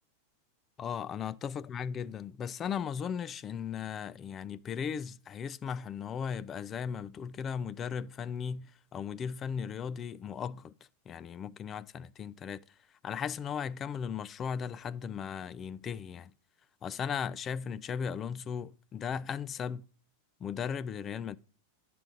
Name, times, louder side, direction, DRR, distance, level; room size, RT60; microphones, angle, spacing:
voice 1, 0.8-10.7 11.1-12.6 13.0-16.3 16.8-19.8 20.4-21.4, left 7 dB, 30° left, 0.4 m, -37 dB
10.5 x 7.6 x 3.9 m
hypercardioid pair, 100°, 0 cm